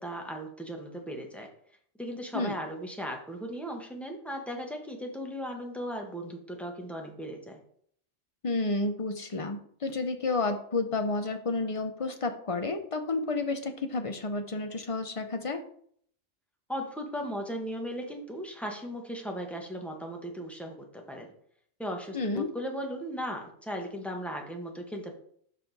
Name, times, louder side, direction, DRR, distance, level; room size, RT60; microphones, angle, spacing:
voice 1, 0.0-1.5 2.0-7.6 16.7-21.3 21.8-25.2, equal, ahead, 2 dB, 1.1 m, -37 dB
voice 2, 8.4-15.6 22.1-22.5, left 3 dB, 35° left, 7 dB, 0.7 m, -31 dB
7.4 x 5.4 x 4.0 m, 0.62 s
omnidirectional pair, 1.2 m